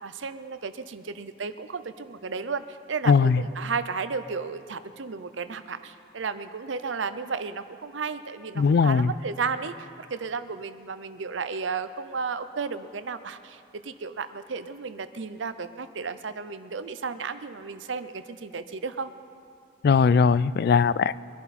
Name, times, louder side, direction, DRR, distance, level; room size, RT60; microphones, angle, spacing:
voice 1, 0.0-19.1, right 5 dB, 75° right, 11 dB, 0.7 m, -33 dB
voice 2, 3.1-3.4 8.6-9.1 19.8-21.2, left 5 dB, 55° left, 18 dB, 0.3 m, -19 dB
23.0 x 11.0 x 4.2 m, 2.4 s
head